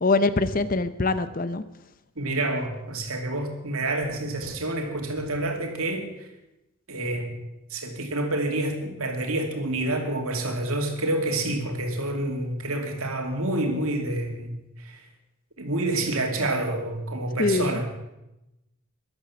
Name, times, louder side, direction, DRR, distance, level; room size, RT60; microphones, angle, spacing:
voice 1, 0.0-1.6 17.4-17.8, left 3 dB, 40° left, 13 dB, 0.7 m, -23 dB
voice 2, 2.2-6.3 6.9-7.4 7.7-14.5 14.8-15.0 15.6-17.9, right 2 dB, 80° right, 3 dB, 2.6 m, -28 dB
13.5 x 11.5 x 7.2 m, 0.93 s
head